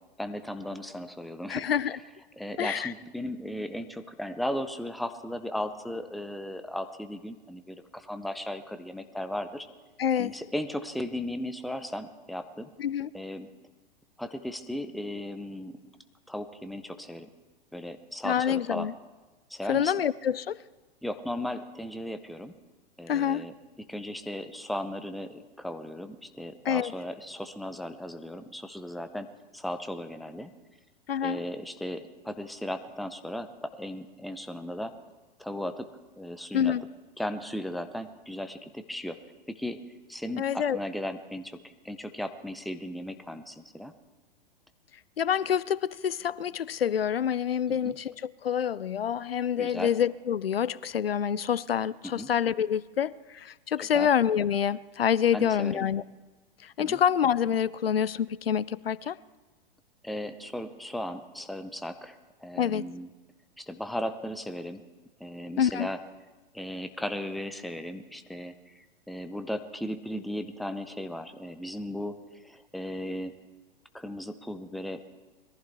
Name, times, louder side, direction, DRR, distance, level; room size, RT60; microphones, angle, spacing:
voice 1, 0.2-1.7 2.4-9.7 10.1-12.7 13.1-13.5 14.2-15.8 16.3-17.3 17.7-18.9 19.5-19.9 21.0-22.6 23.0-29.3 29.5-30.5 31.2-35.0 35.4-35.9 36.2-36.7 37.2-39.2 39.5-39.8 40.1-41.6 41.8-43.9 47.7-48.0 49.6-49.9 52.0-52.3 53.8-54.1 55.3-55.8 56.8-57.0 60.0-63.1 63.6-64.8 65.2-66.0 66.5-73.3 73.9-75.0, left 1 dB, ahead, 0.6 m, -36 dB
voice 2, 1.5-2.0 2.6-2.9 10.0-10.3 12.8-13.1 18.2-18.9 19.7-20.6 23.1-23.4 26.7-26.9 31.1-31.4 36.5-36.8 40.4-40.8 45.2-56.0 56.6-59.2 62.6-62.8 65.6-65.9, left 8 dB, 85° left, 0.4 m, -27 dB
21.5 x 14.5 x 3.4 m
figure-of-eight pair, 105°, 29 cm